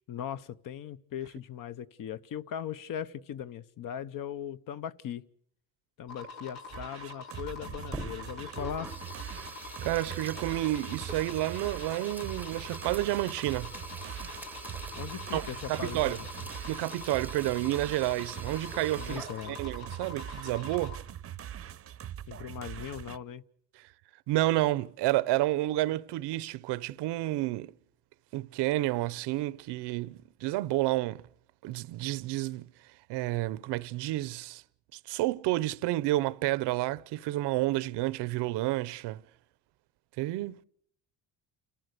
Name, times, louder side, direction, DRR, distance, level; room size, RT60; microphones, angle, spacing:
voice 1, 0.1-5.2 6.0-8.9 14.9-16.3 18.9-19.6 22.3-23.4, left 9 dB, 50° left, 1.0 m, -39 dB
sound 1, 6.1-21.0, left 3 dB, 85° left, 5.7 m, -46 dB
sound 2, 6.7-23.2, right 11 dB, 35° right, 0.7 m, -42 dB
Sink (filling or washing), 7.7-19.7, right 2 dB, 5° right, 0.8 m, -46 dB
voice 2, 9.8-13.7 15.3-16.2 16.7-21.0 23.8-23.9 24.3-27.7 28.3-31.2 31.6-32.7 33.1-34.6 34.9-39.2 40.2-40.6, right 17 dB, 75° right, 0.8 m, -30 dB
30.0 x 15.0 x 6.7 m
cardioid pair, 125°, 41 cm